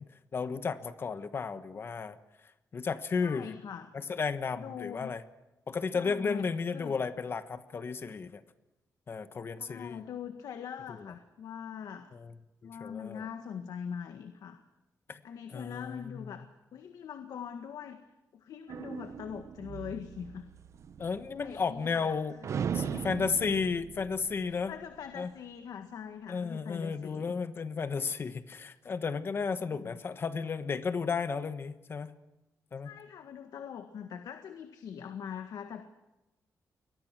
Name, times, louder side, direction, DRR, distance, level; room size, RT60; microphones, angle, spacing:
voice 1, 0.0-2.2 2.7-3.6 3.9-5.2 5.7-8.4 9.1-10.0 11.0-11.1 12.1-12.3 12.8-13.3 15.1-15.2 15.5-16.2 21.0-22.4 22.7-24.7 25.2-25.3 26.3-32.1 32.7-32.9, left 5 dB, 40° left, 11 dB, 1.2 m, -33 dB
voice 2, 3.2-3.9 4.6-5.1 5.9-6.5 6.7-7.0 9.6-12.1 12.6-14.6 15.2-18.0 18.3-20.5 21.4-22.2 22.7-23.1 24.5-27.4 29.7-30.0 32.8-35.8, left 8 dB, 80° left, 7 dB, 1.7 m, -42 dB
sound 1, 18.7-22.1 22.4-25.1, right 7 dB, 50° right, 0.8 m, -39 dB
29.0 x 23.0 x 6.1 m, 0.97 s
wide cardioid pair, 175°, 6 cm